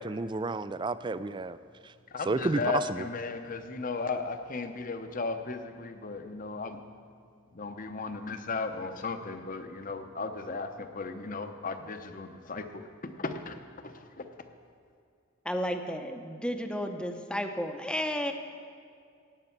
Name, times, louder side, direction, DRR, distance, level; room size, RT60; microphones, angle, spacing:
voice 1, 0.0-1.6 1.8-1.9 2.3-3.0, right 3 dB, 25° right, 14 dB, 0.4 m, -31 dB
voice 2, 2.1-6.8 7.5-14.5, left 4 dB, 45° left, 8 dB, 0.9 m, -36 dB
voice 3, 15.4-18.3, equal, 5° left, 6 dB, 0.8 m, -32 dB
16.5 x 8.9 x 5.9 m, 2.3 s
head